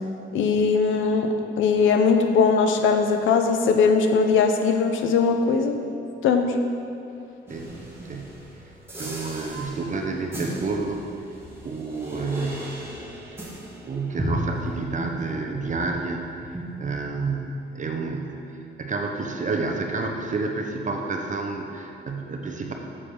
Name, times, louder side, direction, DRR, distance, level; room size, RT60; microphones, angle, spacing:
voice 1, 0.3-1.3 1.6-5.8 6.2-6.5, left 5 dB, 85° left, 6 dB, 0.8 m, -20 dB
sound 1, 7.5-16.1 16.4-17.5, equal, 10° right, 2.1 m, -36 dB
voice 2, 9.0-11.0 11.6-12.7 13.8-16.3 16.8-22.7, right 3 dB, 40° right, 2 dB, 1.0 m, -29 dB
7.7 x 7.2 x 5.0 m, 2.8 s
cardioid pair, 90°, 20 cm